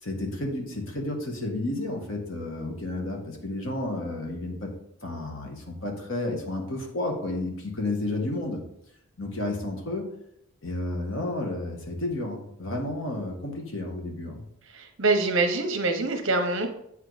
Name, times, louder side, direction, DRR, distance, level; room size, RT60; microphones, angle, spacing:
voice 1, 0.0-4.7 5.0-8.6 9.2-10.0 10.6-14.4, left 2 dB, 60° left, 2 dB, 1.5 m, -31 dB
voice 2, 14.7-16.7, right 3 dB, 60° right, 5 dB, 1.0 m, -25 dB
7.8 x 4.9 x 4.0 m, 0.76 s
head